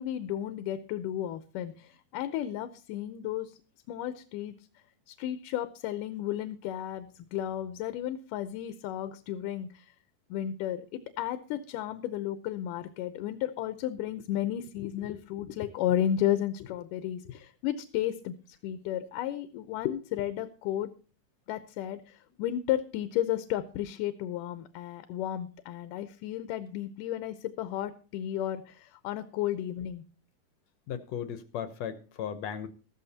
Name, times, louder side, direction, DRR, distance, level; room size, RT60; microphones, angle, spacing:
voice 1, 0.0-3.6 3.9-4.5 5.1-9.9 10.3-18.3 18.6-20.9 21.5-30.0, left 11 dB, 85° left, 11 dB, 2.4 m, -33 dB
voice 2, 30.9-32.7, left 8 dB, 70° left, 11 dB, 1.8 m, -36 dB
14.5 x 13.5 x 2.8 m, 0.37 s
omnidirectional pair, 3.7 m